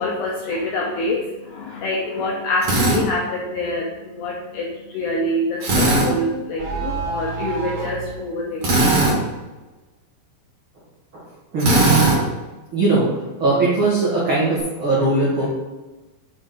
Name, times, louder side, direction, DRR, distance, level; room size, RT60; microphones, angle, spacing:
voice 1, 0.0-8.6, left 1 dB, 75° left, -2 dB, 2.4 m, -26 dB
Drill, 2.6-3.0 5.6-6.1 8.6-9.2 11.6-12.2, right 2 dB, 45° right, 2.0 m, -17 dB
sound 1, 6.0-8.1, right 4 dB, 75° right, 2.9 m, -28 dB
voice 2, 11.5-12.0 12.7-13.1 13.4-15.5, right 2 dB, 90° right, -7 dB, 1.1 m, -20 dB
7.5 x 6.4 x 3.9 m, 1.2 s
omnidirectional pair, 5.7 m